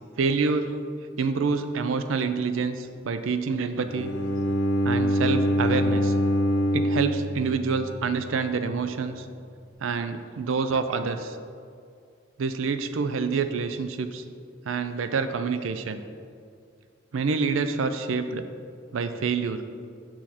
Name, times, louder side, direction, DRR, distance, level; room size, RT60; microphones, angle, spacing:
voice 1, 0.2-0.8 1.2-4.1 4.8-6.1 6.7-9.3 9.8-11.4 12.4-14.2 14.7-16.0 17.1-18.4 18.9-19.6, right 4 dB, 85° right, 10 dB, 0.4 m, -27 dB
Bowed string instrument, 3.9-8.0, equal, 65° left, 0.8 m, -24 dB
6.3 x 6.1 x 4.1 m, 2.3 s
head